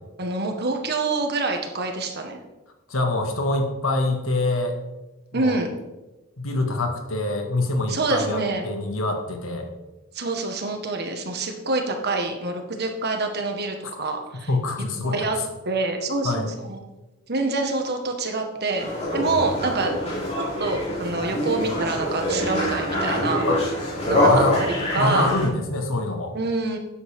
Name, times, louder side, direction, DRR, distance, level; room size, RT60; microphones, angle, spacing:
voice 1, 0.2-2.4 5.3-5.7 7.9-8.7 10.1-14.5 15.0-15.3 15.6-16.8 17.3-20.0 20.6-23.4 24.0-24.4 24.9-25.3 26.3-26.8, right 3 dB, 55° right, 4 dB, 1.7 m, -26 dB
voice 2, 2.9-4.8 5.3-5.6 6.4-9.7 14.5-15.5 16.2-16.5 19.2-19.3 23.5-23.6 24.1-24.6 25.0-26.3, left 2 dB, 85° left, 3 dB, 2.0 m, -25 dB
sound 1, 18.8-25.5, left 1 dB, 35° left, 4.6 m, -25 dB
13.0 x 9.6 x 3.7 m, 1.1 s
head